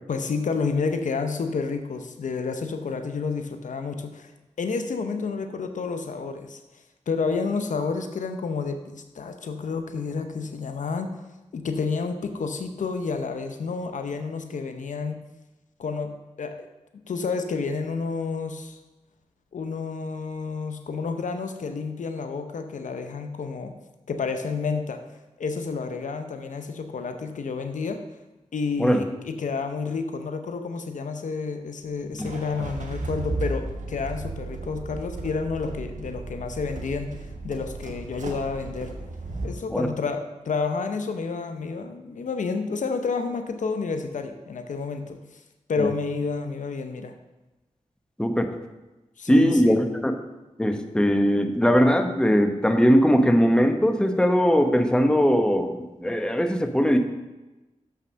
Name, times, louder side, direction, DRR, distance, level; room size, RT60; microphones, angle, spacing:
voice 1, 0.1-4.3 4.6-6.6 7.1-11.2 11.5-15.2 15.8-16.1 16.4-16.7 17.1-18.8 19.5-23.7 24.1-25.0 25.4-28.0 28.5-38.9 39.4-45.2 45.7-47.1 49.2-49.8, left 4 dB, 80° left, 7 dB, 0.7 m, -30 dB
sound 1, 32.2-39.5, right 3 dB, 75° right, 1.3 m, -34 dB
voice 2, 49.3-50.1 50.6-57.0, equal, 5° left, 6 dB, 1.0 m, -20 dB
6.8 x 5.8 x 6.2 m, 1.1 s
cardioid pair, 45°, 13 cm